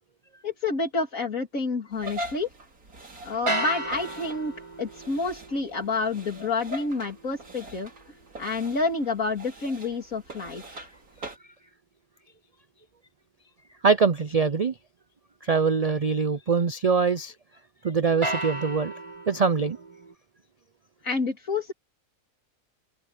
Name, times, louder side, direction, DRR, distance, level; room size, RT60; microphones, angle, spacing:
voice 1, 0.4-2.5 3.2-4.5 4.8-10.9 21.0-21.7, left 3 dB, 70° left, 3.2 m, -29 dB
sound 1, 1.9-11.4, equal, 85° right, 4.2 m, -42 dB
sound 2, 3.5-9.6 18.2-20.1, right 1 dB, 20° right, 1.9 m, -36 dB
voice 2, 13.8-14.7 15.4-17.3 17.8-18.9 19.3-19.8, right 5 dB, 65° right, 0.3 m, -23 dB
omnidirectional pair, 1.5 m